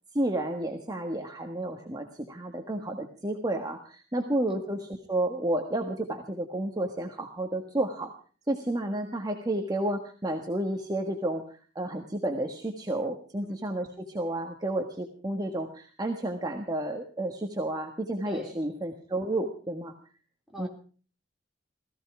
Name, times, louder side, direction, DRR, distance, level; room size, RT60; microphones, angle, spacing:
voice 1, 0.1-8.1 8.5-19.9 20.6-20.7, right 1 dB, 20° right, 3 dB, 1.5 m, -31 dB
voice 2, 4.2-4.6 13.4-13.6 18.3-18.6 20.5-20.7, equal, ahead, -1 dB, 3.8 m, -44 dB
17.5 x 15.5 x 4.9 m, 0.41 s
head